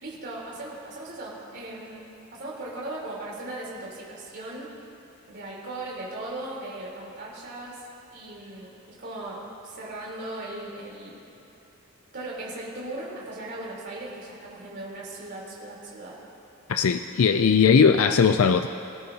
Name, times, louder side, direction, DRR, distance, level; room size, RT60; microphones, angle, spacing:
voice 1, 0.0-2.1 2.3-4.7 5.3-7.8 8.1-11.2 12.1-16.2, right 2 dB, 45° right, -6 dB, 3.8 m, -38 dB
voice 2, 16.7-18.7, left 6 dB, 70° left, 8 dB, 0.4 m, -19 dB
25.0 x 13.5 x 2.9 m, 2.7 s
head